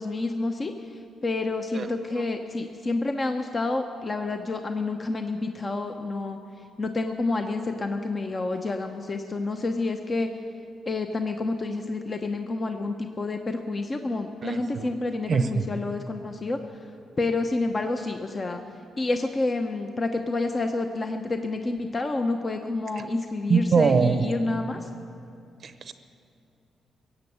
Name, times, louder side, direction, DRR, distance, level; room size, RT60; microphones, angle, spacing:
voice 1, 0.0-6.4 6.8-10.3 10.9-16.6 17.2-18.6 19.0-24.9, left 3 dB, 35° left, 5 dB, 0.8 m, -29 dB
voice 2, 14.4-15.0 15.3-15.7 23.5-24.2 25.6-25.9, right 5 dB, 55° right, 10 dB, 0.7 m, -23 dB
15.5 x 7.9 x 8.5 m, 2.7 s
cardioid pair, 70°, 0 cm